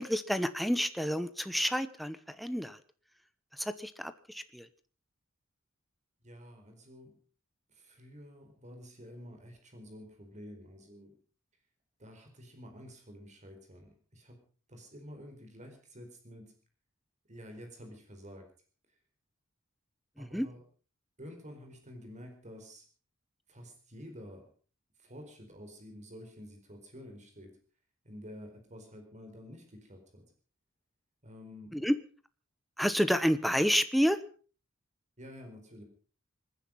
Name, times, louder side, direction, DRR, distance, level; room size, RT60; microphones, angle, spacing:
voice 1, 0.0-2.8 3.5-4.7 20.2-20.5 31.7-32.0 32.8-34.2, equal, ahead, 11 dB, 0.9 m, -29 dB
voice 2, 6.2-7.1 7.7-11.1 12.0-14.4 14.7-16.6 17.3-18.5 20.2-20.6 21.2-22.8 23.5-24.5 25.0-27.6 28.0-30.3 31.2-31.8 35.2-35.8, equal, 35° right, 4 dB, 4.6 m, -50 dB
25.5 x 10.5 x 5.5 m, 0.39 s
head